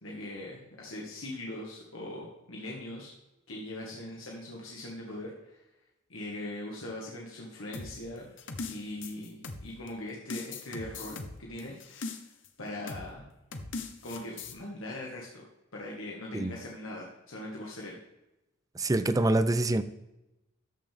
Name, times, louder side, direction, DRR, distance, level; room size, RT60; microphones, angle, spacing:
voice 1, 0.0-3.1 3.5-5.6 6.1-8.3 8.7-12.1 12.6-13.3 14.0-15.5 15.7-18.0, left 1 dB, 85° left, -3 dB, 1.8 m, -41 dB
sound 1, 7.7-9.9 10.3-12.5 12.9-13.1 13.5-14.6, left 3 dB, 65° left, 1.1 m, -40 dB
voice 2, 18.8-19.8, right 2 dB, 20° right, 12 dB, 0.5 m, -25 dB
13.5 x 5.8 x 3.5 m, 0.94 s
head